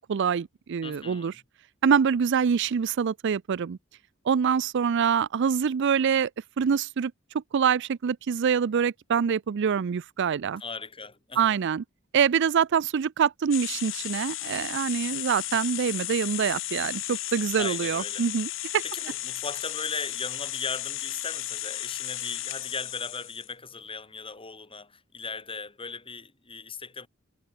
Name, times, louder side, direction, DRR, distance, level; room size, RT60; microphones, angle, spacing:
voice 1, 0.1-1.3 1.8-3.8 4.3-6.3 6.6-10.6 11.4-11.8 12.1-18.8, right 7 dB, 60° right, 0.4 m, -25 dB
voice 2, 0.8-1.3 10.6-11.5 17.6-18.3 18.8-27.1, left 4 dB, 25° left, 2.9 m, -37 dB
sound 1, 13.5-23.5, left 15 dB, 70° left, 2.6 m, -34 dB
head